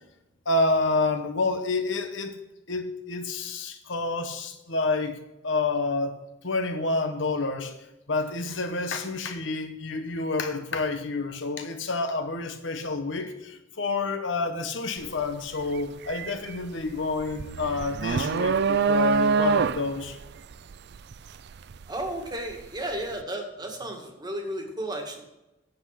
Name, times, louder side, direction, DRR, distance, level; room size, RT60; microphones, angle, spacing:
voice 1, 0.4-2.4 2.7-5.2 5.4-6.1 6.4-7.7 8.1-20.2, left 3 dB, 65° left, 7 dB, 1.1 m, -28 dB
sound 1, 15.0-15.2 15.6-22.6, right 5 dB, 55° right, 0.4 m, -26 dB
voice 2, 21.9-25.2, right 1 dB, 20° right, 2 dB, 1.9 m, -33 dB
9.0 x 8.0 x 5.8 m, 0.94 s
head